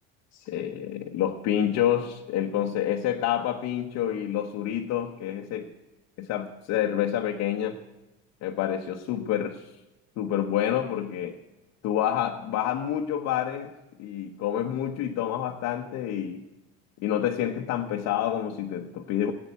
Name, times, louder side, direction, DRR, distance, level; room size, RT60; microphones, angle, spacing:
voice 1, 0.3-5.7 6.2-7.8 8.4-9.7 10.2-11.4 11.8-16.4 17.0-19.3, left 10 dB, 60° left, 2 dB, 1.1 m, -28 dB
16.0 x 8.8 x 8.2 m, 1.0 s
cardioid pair, 140°, 30 cm